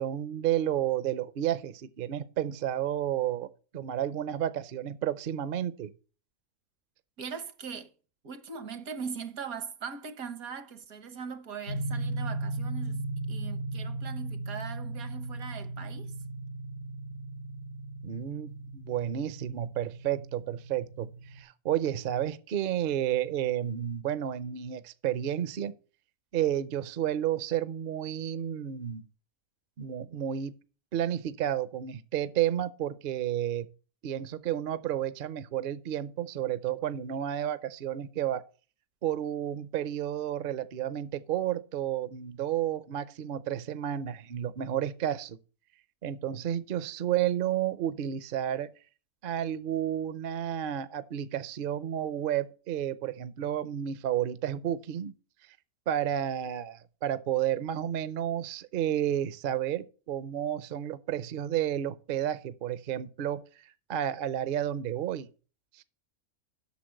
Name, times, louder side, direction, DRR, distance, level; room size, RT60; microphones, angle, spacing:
voice 1, 0.0-5.9 18.0-25.7 26.3-29.0 29.8-30.5 30.9-33.7 34.0-38.4 39.0-45.4 46.0-48.7 49.2-55.1 55.9-65.3 65.7-65.8, right 11 dB, 55° right, 0.6 m, -31 dB
voice 2, 7.2-7.9 8.2-13.0 13.3-16.1, right 6 dB, 80° right, 1.5 m, -40 dB
sound 1, 11.7-21.4, right 2 dB, 80° left, 2.7 m, -37 dB
8.3 x 6.4 x 6.4 m
omnidirectional pair, 1.5 m